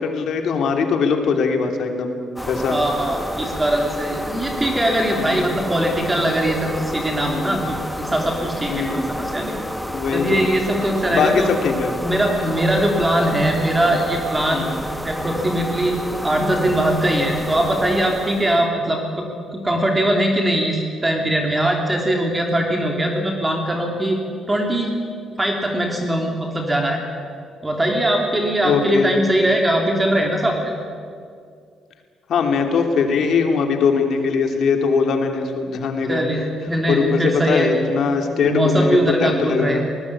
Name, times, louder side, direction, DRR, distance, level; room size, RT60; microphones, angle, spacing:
voice 1, 0.0-2.1 2.5-2.8 5.1-5.5 7.2-7.6 8.7-9.1 9.9-10.4 11.1-12.0 14.5-14.8 28.6-29.2 32.3-36.2 36.9-39.8, left 5 dB, 70° left, 4 dB, 3.0 m, -21 dB
sound 1, 2.4-18.7, equal, ahead, 1.4 m, -30 dB
voice 2, 2.7-9.6 10.1-11.5 12.0-19.2 19.5-24.2 24.5-24.9 25.4-27.0 27.6-30.7 36.1-37.7 38.4-39.9, right 1 dB, 15° right, 2 dB, 3.3 m, -21 dB
20.5 x 19.0 x 8.7 m, 2.2 s
cardioid pair, 90°, 0 cm